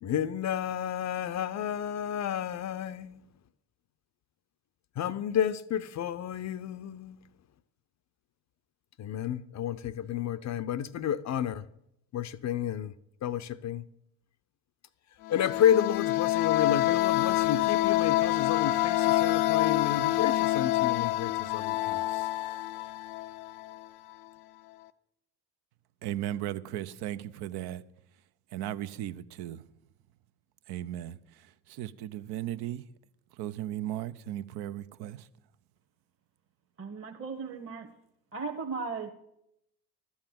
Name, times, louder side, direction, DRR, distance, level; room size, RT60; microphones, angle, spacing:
voice 1, 0.0-3.2 5.0-7.2 9.0-11.6 12.1-12.9 13.2-13.8 15.3-22.0, left 9 dB, 35° left, 0.6 m, -31 dB
sound 1, 15.2-23.8, left 16 dB, 75° left, 0.7 m, -27 dB
voice 2, 26.0-27.8 28.5-29.7 30.7-32.8 33.4-35.3, right 12 dB, 55° right, 0.8 m, -36 dB
voice 3, 36.8-37.9 38.3-39.1, right 4 dB, 30° right, 1.3 m, -36 dB
12.5 x 7.2 x 7.5 m
figure-of-eight pair, 55°, 46 cm